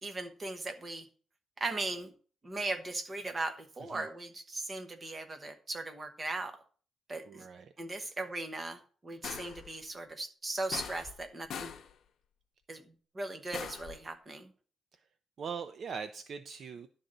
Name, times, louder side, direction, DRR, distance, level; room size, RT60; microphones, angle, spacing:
voice 1, 0.0-1.1 1.6-2.1 2.4-6.6 7.1-7.5 7.8-11.7 12.7-14.5, right 2 dB, 20° right, 6 dB, 1.1 m, -38 dB
voice 2, 7.3-8.1 14.9-15.0 15.4-16.9, right 6 dB, 45° right, 10 dB, 0.5 m, -42 dB
sound 1, 9.2-9.7 10.7-11.2 11.5-11.9 13.5-14.0, left 8 dB, 60° left, 0.8 m, -41 dB
11.0 x 3.9 x 7.7 m, 0.43 s
cardioid pair, 170°, 0 cm